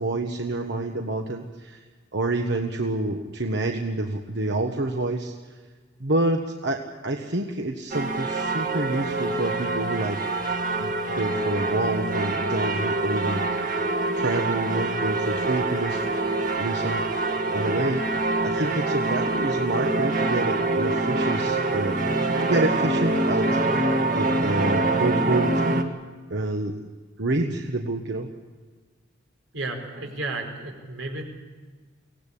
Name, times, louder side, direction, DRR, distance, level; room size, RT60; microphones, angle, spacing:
voice 1, 0.0-1.8 2.1-5.3 6.0-10.2 10.8-13.7 14.1-16.2 16.5-17.0 17.5-25.6 26.3-26.8 27.2-28.3, right 2 dB, 60° right, 3 dB, 1.3 m, -28 dB
sound 1, 7.9-25.8, right 2 dB, 45° right, 1.9 m, -25 dB
voice 2, 29.5-31.2, right 2 dB, 90° right, 3 dB, 4.7 m, -33 dB
23.5 x 17.5 x 8.5 m, 1.4 s
head